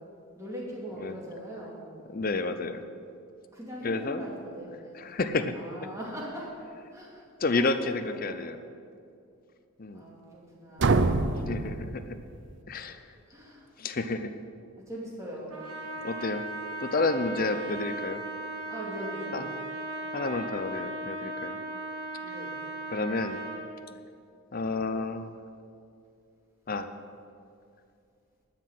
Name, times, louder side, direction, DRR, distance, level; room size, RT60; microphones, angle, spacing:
voice 1, 0.3-2.8 3.5-4.9 5.5-6.5 6.9-8.2 9.9-11.4 13.3-13.7 14.9-15.9 18.7-19.5 22.2-22.5, equal, 15° right, -4 dB, 2.6 m, -41 dB
voice 2, 2.1-2.8 3.8-4.2 4.9-5.5 7.4-8.6 9.8-10.0 11.4-12.2 12.7-13.0 13.8-14.3 16.0-16.4 16.8-18.2 19.3-19.4 20.1-21.6 22.9-23.4 24.5-25.4 26.7-26.9, left 3 dB, 40° left, 9 dB, 0.6 m, -30 dB
sound 1, 10.8-12.7, right 3 dB, 55° right, 0.5 m, -26 dB
Trumpet, 15.5-23.7, right 2 dB, 90° right, 2.0 m, -37 dB
12.0 x 6.0 x 9.2 m, 2.5 s
head